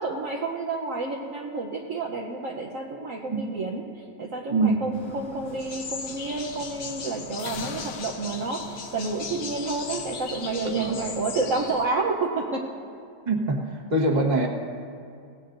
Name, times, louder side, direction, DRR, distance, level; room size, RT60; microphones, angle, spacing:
voice 1, 0.0-3.8 4.2-12.7, right 3 dB, 55° right, -1 dB, 1.2 m, -30 dB
sound 1, 4.9-11.9, left 8 dB, 85° left, 1.3 m, -44 dB
sound 2, 5.6-11.8, left 5 dB, 65° left, 1.5 m, -38 dB
voice 2, 10.6-10.9 13.2-14.5, right 2 dB, 25° right, 0 dB, 1.4 m, -24 dB
23.0 x 17.5 x 2.6 m, 2.4 s
omnidirectional pair, 1.8 m